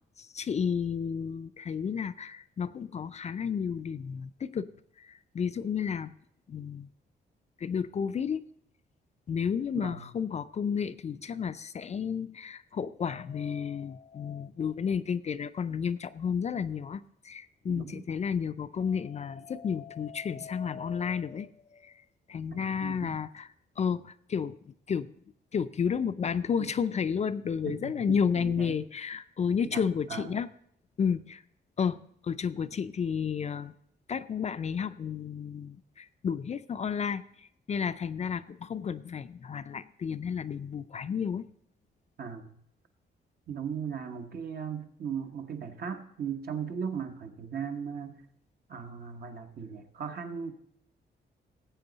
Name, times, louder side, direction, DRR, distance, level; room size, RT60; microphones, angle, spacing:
voice 1, 0.2-4.7 5.0-6.1 6.5-6.9 7.6-8.4 9.3-21.9 22.3-23.5 23.8-25.1 25.5-30.5 31.0-31.4 31.8-33.7 34.1-37.2 37.7-41.5, left 7 dB, 35° left, 12 dB, 0.4 m, -32 dB
voice 2, 9.7-10.1 17.7-18.0 22.5-23.2 26.6-26.7 27.6-28.8 29.7-29.8 30.1-30.4 42.2-42.6 43.5-48.2 48.7-50.5, right 7 dB, 55° right, 6 dB, 1.1 m, -38 dB
17.5 x 7.9 x 4.0 m, 0.69 s
wide cardioid pair, 135°, 19 cm